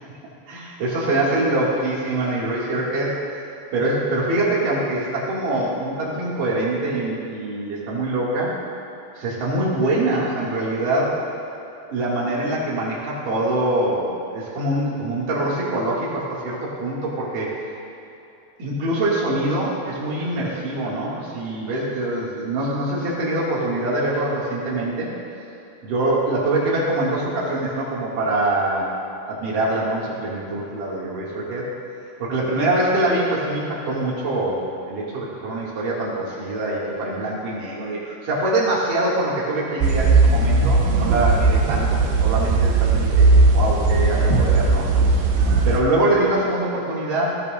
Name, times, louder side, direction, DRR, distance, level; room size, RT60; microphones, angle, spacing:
voice 1, 0.5-3.2 3.7-8.5 9.2-11.2 11.9-17.5 18.6-25.1 25.8-29.0 29.3-31.7 32.2-43.3 43.5-44.9 45.7-47.4, right 2 dB, 55° right, -6 dB, 3.6 m, -24 dB
sound 1, 39.8-45.8, right 3 dB, 75° right, 3.1 m, -17 dB
17.0 x 12.5 x 2.6 m, 2.9 s
omnidirectional pair, 5.0 m